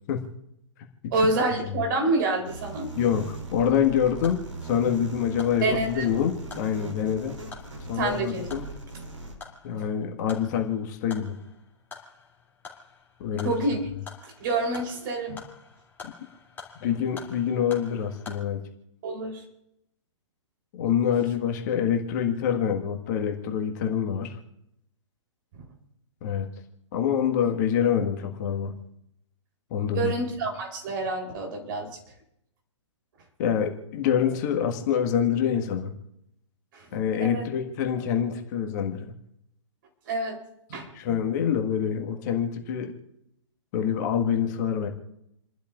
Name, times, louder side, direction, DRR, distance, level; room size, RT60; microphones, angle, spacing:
voice 1, 1.1-2.9 5.6-6.1 7.9-8.5 9.7-9.8 13.4-13.8 14.2-15.4 19.0-19.4 25.6-25.7 27.4-27.5 29.9-31.9 36.7-37.4 40.1-40.4 40.7-41.2, right 2 dB, 40° right, 0 dB, 3.8 m, -28 dB
sound 1, 2.5-9.4, right 3 dB, 80° right, 3.1 m, -40 dB
voice 2, 2.9-7.3 7.9-8.7 9.6-11.3 13.2-13.6 16.7-18.6 20.7-24.4 26.2-26.5 26.9-28.7 29.7-30.1 33.4-35.9 36.9-39.1 40.9-42.9 43.7-44.9, left 8 dB, 35° left, 2 dB, 1.7 m, -26 dB
sound 2, 4.2-18.4, left 5 dB, 10° left, 2.9 m, -48 dB
30.0 x 12.0 x 2.5 m, 0.80 s
figure-of-eight pair, 120°, 16 cm